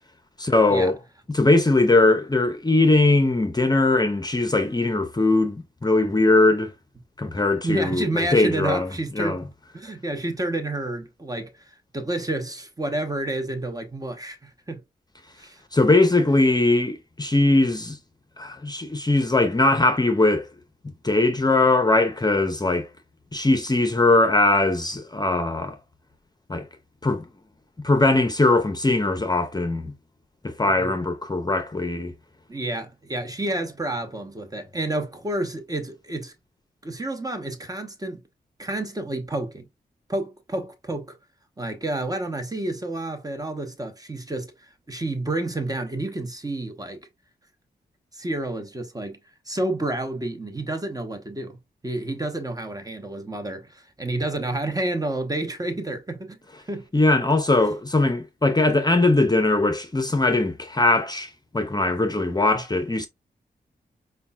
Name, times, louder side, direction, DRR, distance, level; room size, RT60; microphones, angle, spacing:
voice 1, 0.4-0.9 1.3-6.7 7.2-9.4 15.7-18.0 18.4-20.5 21.0-22.9 23.3-25.8 26.5-26.7 27.0-27.3 27.8-29.9 30.4-32.1 56.9-63.1, left 2 dB, 25° left, 0.6 m, -20 dB
voice 2, 7.6-9.4 9.7-11.5 11.9-14.8 15.4-15.6 30.8-30.9 32.5-36.3 36.8-38.2 38.6-39.7 40.1-41.2 41.6-44.5 44.9-47.0 48.1-49.2 49.5-51.6 51.8-56.4 56.7-56.9 62.5-62.6, right 2 dB, 20° right, 0.9 m, -29 dB
5.2 x 2.2 x 2.3 m
cardioid pair, 50°, 18 cm